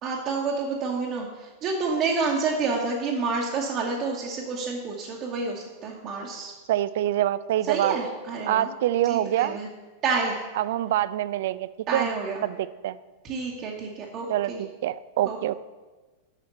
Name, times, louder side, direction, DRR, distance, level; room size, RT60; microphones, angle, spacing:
voice 1, 0.0-6.5 7.7-8.7 9.0-9.7 10.0-10.4 11.9-12.4 13.2-14.6 15.2-15.4, right 4 dB, 35° right, -3 dB, 1.2 m, -29 dB
voice 2, 6.7-7.9 8.5-9.6 10.6-12.1 12.4-13.0 14.3-15.6, right 13 dB, 55° right, 16 dB, 0.3 m, -25 dB
7.4 x 6.3 x 6.7 m, 1.3 s
figure-of-eight pair, 90°, 0 cm